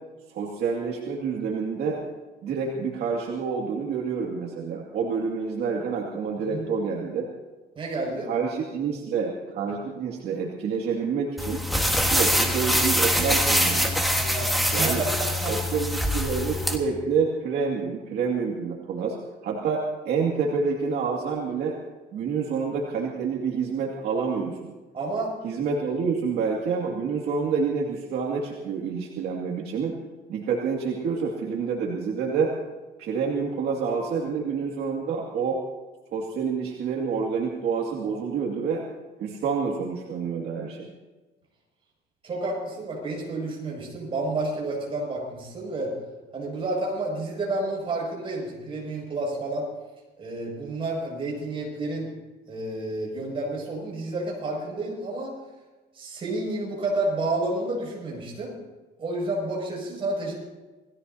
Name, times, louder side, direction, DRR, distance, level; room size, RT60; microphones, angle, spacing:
voice 1, 0.3-2.0 2.4-7.3 8.3-11.6 12.0-14.1 14.7-15.0 15.5-19.2 19.4-21.8 22.1-24.7 25.4-30.0 30.3-32.6 33.0-35.6 36.1-38.8 39.2-40.9, right 5 dB, 65° right, -2 dB, 2.3 m, -28 dB
voice 2, 7.8-8.3 13.6-15.6 19.0-19.1 24.9-25.3 42.2-45.9 46.3-49.7 50.2-52.1 52.5-55.3 55.9-58.5 59.0-60.4, right 2 dB, 30° right, -2 dB, 6.5 m, -30 dB
sound 1, 11.4-16.8, equal, ahead, 1.5 m, -24 dB
28.0 x 17.5 x 2.8 m, 1.2 s
cardioid pair, 175°, 18 cm